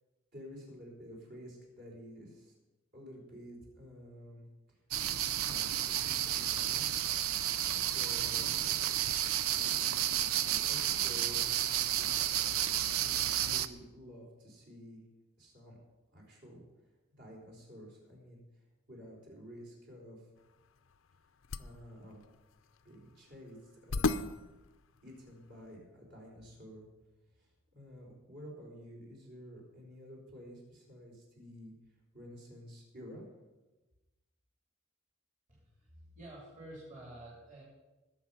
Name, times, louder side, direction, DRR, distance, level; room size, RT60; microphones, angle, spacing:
voice 1, 0.3-2.6 2.9-4.8 5.1-6.1 6.3-6.8 7.9-8.5 10.2-11.5 12.9-15.0 15.4-15.8 16.1-16.6 17.2-18.4 18.9-20.2 21.6-22.2 22.8-23.6 23.9-24.1 25.0-26.9 27.4-31.7 32.1-33.2, equal, 50° right, -2 dB, 4.6 m, -51 dB
sound 1, 4.9-13.7, right 11 dB, 85° right, 0.6 m, -31 dB
sound 2, 20.4-25.7, left 3 dB, 65° left, 0.6 m, -39 dB
voice 2, 35.5-37.6, right 1 dB, 35° right, -5 dB, 3.5 m, -50 dB
20.0 x 7.2 x 5.8 m, 1.1 s
head